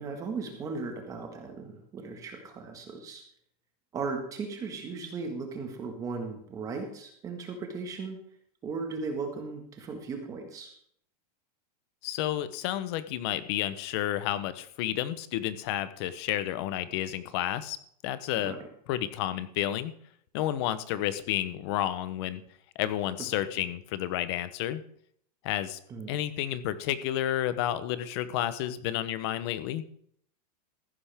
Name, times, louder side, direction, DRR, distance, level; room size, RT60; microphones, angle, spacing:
voice 1, 0.0-3.2 3.9-8.2 8.6-10.7 18.4-18.6 25.9-26.1, right 4 dB, 15° right, 4 dB, 1.6 m, -37 dB
voice 2, 12.0-17.8 18.0-18.6 18.9-19.9 20.3-22.4 22.7-24.8 25.4-25.8 26.1-29.8, left 12 dB, 40° left, 14 dB, 0.8 m, -31 dB
14.5 x 11.5 x 3.5 m, 0.65 s
supercardioid pair, 175°, 20 cm